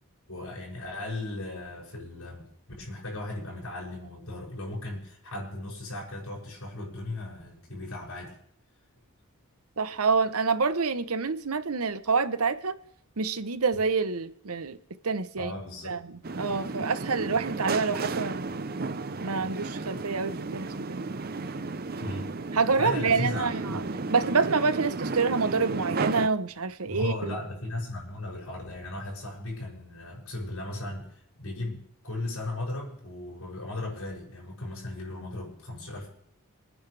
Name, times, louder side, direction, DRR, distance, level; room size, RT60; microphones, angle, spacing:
voice 1, 0.3-2.5 2.8-8.4 15.4-16.0 22.0-22.3 22.8-23.9 26.9-36.1, left 2 dB, 75° left, 7.0 m, -36 dB
voice 2, 9.8-12.7 13.2-14.8 15.0-15.5 15.8-18.5 19.2-21.0 22.5-23.8 24.1-27.4, right 4 dB, 80° right, 0.9 m, -27 dB
sound 1, 16.2-26.3, right 3 dB, 40° right, 0.7 m, -33 dB
28.0 x 9.7 x 3.4 m
head